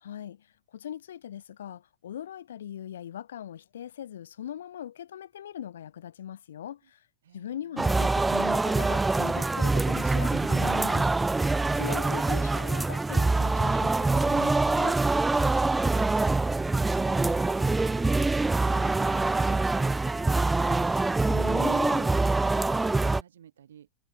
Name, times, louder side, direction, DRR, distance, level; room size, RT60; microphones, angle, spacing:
voice 1, 0.0-7.0 7.3-15.0 21.3-22.1, left 10 dB, 60° left, 0.5 m, -40 dB
voice 2, 7.2-7.8 15.8-16.4 16.8-18.3 18.6-21.1 21.9-22.1 22.5-23.9, right 9 dB, 65° right, 2.6 m, -52 dB
sound 1, 7.8-23.2, right 3 dB, 10° right, 0.3 m, -25 dB
figure-of-eight pair, 90°, 0 cm